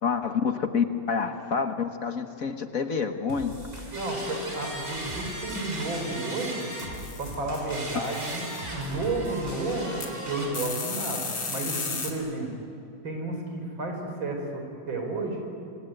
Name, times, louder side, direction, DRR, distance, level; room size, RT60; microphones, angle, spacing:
voice 1, 0.0-3.6, left 6 dB, 50° left, 7 dB, 1.6 m, -28 dB
sound 1, 3.3-10.3, right 1 dB, 20° right, 6.2 m, -43 dB
sound 2, 3.9-7.2 7.7-10.5, right 1 dB, 35° right, 5.5 m, -37 dB
voice 2, 3.9-6.7 7.2-12.5 13.0-15.4, right 2 dB, 85° right, 3 dB, 5.5 m, -32 dB
sound 3, 6.8-7.6 7.9-8.6 10.0-10.1 10.5-12.1, left 4 dB, 75° left, 3.7 m, -34 dB
26.5 x 24.0 x 9.3 m, 2.6 s
omnidirectional pair, 2.1 m